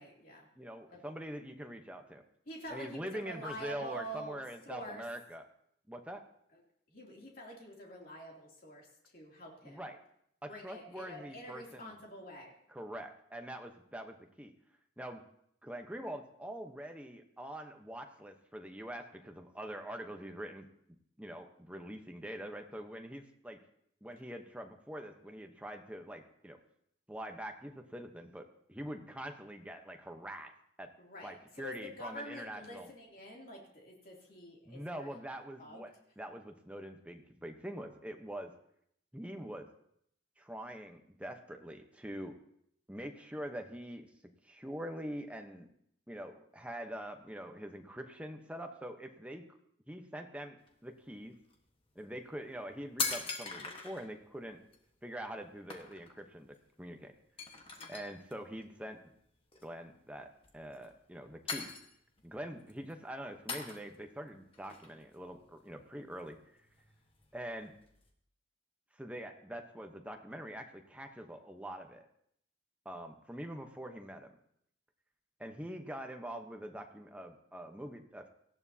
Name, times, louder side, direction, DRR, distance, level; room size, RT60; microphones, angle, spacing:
voice 1, 0.0-0.5 0.9-1.1 2.5-4.4 4.7-5.0 6.9-8.9 9.1-9.9 10.5-12.5 31.0-35.1 35.6-35.9 57.8-58.1, equal, 50° left, -2 dB, 2.9 m, -47 dB
voice 2, 0.6-2.2 2.7-5.4 5.9-6.2 9.6-10.0 10.4-11.9 12.7-14.5 15.0-15.2 15.6-20.7 21.2-23.6 24.0-26.6 27.1-30.5 30.8-30.9 31.2-32.9 34.7-38.5 39.1-39.7 40.4-42.3 42.9-44.1 44.4-45.7 46.1-49.4 49.9-51.4 51.9-54.6 55.0-57.1 57.9-59.0 59.6-61.7 62.2-66.4 67.3-67.7 69.0-72.1 72.8-74.3 75.4-78.3, right 1 dB, 5° right, 4 dB, 0.9 m, -44 dB
sound 1, 50.6-50.7 51.3-51.5 52.3-52.4 52.6-54.1 54.7-54.8 55.2-55.4 55.7-56.2 56.5-56.6 56.9-57.0 57.4-58.3 59.5-59.9 60.4-61.1 61.5-62.2 62.6-62.9 63.5-64.1 64.5-65.8 66.2-68.1, left 4 dB, 30° left, 1.4 m, -41 dB
18.5 x 14.0 x 2.8 m, 0.71 s
head